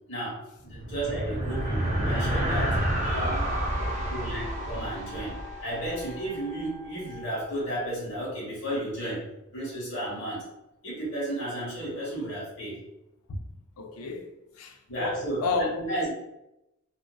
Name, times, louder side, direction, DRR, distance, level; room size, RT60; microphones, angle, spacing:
voice 1, 0.1-3.5 4.1-10.5 10.8-12.8 14.9-15.5 15.7-16.1, right 1 dB, 55° left, 1.1 m, -33 dB
sound 1, 0.6-6.3, right 1 dB, 30° right, 0.4 m, -29 dB
Wind instrument woodwind instrument, 1.5-7.6, left 7 dB, 80° right, 0.7 m, -46 dB
voice 2, 3.1-4.0 13.3-13.4 13.8-14.3 14.6-15.9, left 3 dB, 85° left, 0.4 m, -32 dB
2.6 x 2.1 x 2.2 m
head